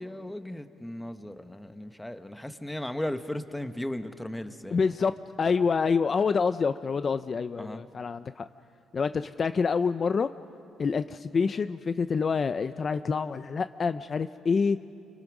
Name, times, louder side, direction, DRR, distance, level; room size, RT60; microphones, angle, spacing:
voice 1, 0.0-5.0 5.5-5.7 7.6-7.8, left 1 dB, 5° left, 9 dB, 1.1 m, -36 dB
voice 2, 4.7-5.1 5.4-8.5 8.9-10.3 10.8-14.8, left 5 dB, 35° left, 11 dB, 0.5 m, -27 dB
30.0 x 25.5 x 6.1 m, 2.7 s
cardioid pair, 125°, 0 cm